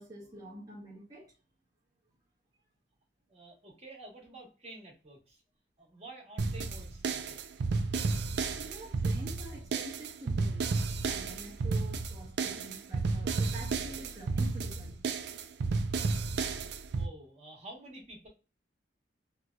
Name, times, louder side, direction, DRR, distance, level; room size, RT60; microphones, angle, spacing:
voice 1, 0.0-1.3 8.5-15.0, right 2 dB, 20° right, 0.8 m, -47 dB
voice 2, 3.3-5.4 5.8-7.5 16.9-18.3, right 2 dB, 35° right, 1.2 m, -49 dB
sound 1, 6.4-17.1, right 4 dB, 65° right, 0.4 m, -32 dB
3.0 x 2.7 x 2.2 m
head